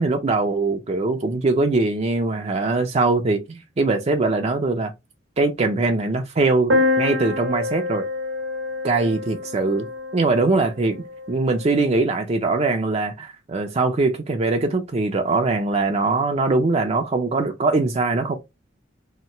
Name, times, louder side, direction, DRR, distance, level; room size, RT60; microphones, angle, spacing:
voice 1, 0.0-4.9 5.4-6.7 7.0-8.0 8.8-9.9 10.1-11.0 11.3-18.4, right 3 dB, 35° right, 0.4 m, -21 dB
sound 1, 6.7-10.4, left 2 dB, 75° right, 0.8 m, -25 dB
3.1 x 2.9 x 4.2 m
head